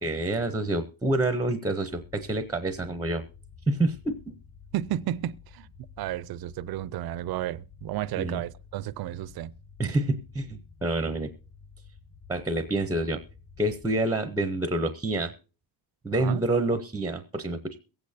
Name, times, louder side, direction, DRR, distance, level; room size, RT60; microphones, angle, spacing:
voice 1, 0.0-3.2 3.7-4.2 8.2-8.4 9.8-11.3 12.3-13.2 13.6-15.3 16.0-17.8, right 2 dB, 10° right, 0.6 m, -27 dB
sound 1, 1.9-14.0, left 5 dB, 55° left, 4.3 m, -51 dB
voice 2, 4.7-5.7 6.0-9.5 16.1-16.4, right 13 dB, 50° right, 0.5 m, -32 dB
23.0 x 8.6 x 2.7 m
cardioid pair, 145°, 48 cm